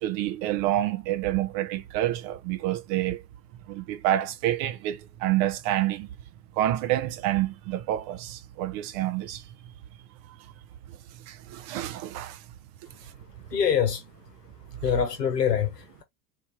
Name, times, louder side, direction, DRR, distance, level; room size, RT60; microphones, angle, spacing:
voice 1, 0.0-3.2 3.7-6.1 6.6-9.4 11.3-12.4, right 13 dB, 30° right, 0.3 m, -28 dB
voice 2, 13.5-14.0 14.8-16.0, left 8 dB, 80° left, 1.1 m, -25 dB
3.2 x 2.6 x 3.3 m
figure-of-eight pair, 85°, 48 cm